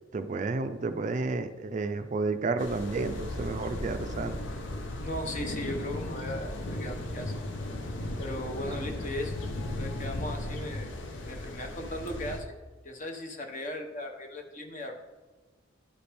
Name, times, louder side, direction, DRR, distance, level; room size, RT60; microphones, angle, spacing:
voice 1, 0.1-4.4 8.7-8.8, right 3 dB, 40° right, 9 dB, 0.4 m, -31 dB
sound 1, 2.6-12.4, left 1 dB, 75° left, 0.7 m, -36 dB
voice 2, 5.0-7.3 8.2-9.4 9.8-10.9 11.2-12.5 12.8-15.0, left 1 dB, 40° left, 3 dB, 0.9 m, -37 dB
11.5 x 4.2 x 3.4 m, 1.3 s
head